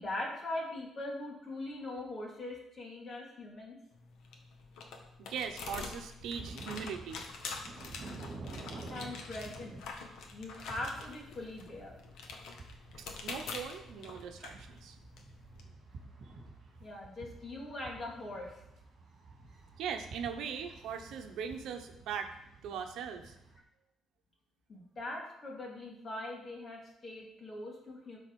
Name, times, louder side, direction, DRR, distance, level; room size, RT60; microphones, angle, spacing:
voice 1, 0.0-3.8 8.9-9.8 10.3-12.0 16.8-18.5 24.7-28.2, left 2 dB, 30° left, -1 dB, 2.3 m, -41 dB
sound 1, 3.9-15.6, left 4 dB, 80° left, 1.4 m, -46 dB
voice 2, 5.2-7.2 13.0-14.9 19.8-22.3 22.6-23.3, right 7 dB, 80° right, 5 dB, 1.0 m, -40 dB
sound 2, 6.2-23.6, right 3 dB, 45° right, 2.6 m, -51 dB
12.5 x 4.2 x 5.4 m, 0.80 s
cardioid pair, 155°, 0 cm